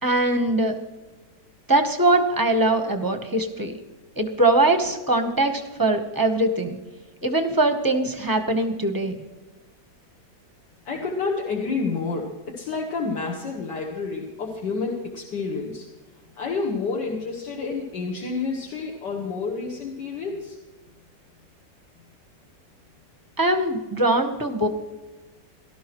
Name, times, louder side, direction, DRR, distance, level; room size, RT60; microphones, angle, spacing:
voice 1, 0.0-0.8 1.7-3.7 4.2-6.8 7.2-9.2 23.4-24.7, right 2 dB, 15° right, 6 dB, 0.8 m, -22 dB
voice 2, 10.9-15.9 16.4-20.6, left 4 dB, 70° left, -1 dB, 1.9 m, -29 dB
17.5 x 12.5 x 3.1 m, 1.2 s
omnidirectional pair, 1.9 m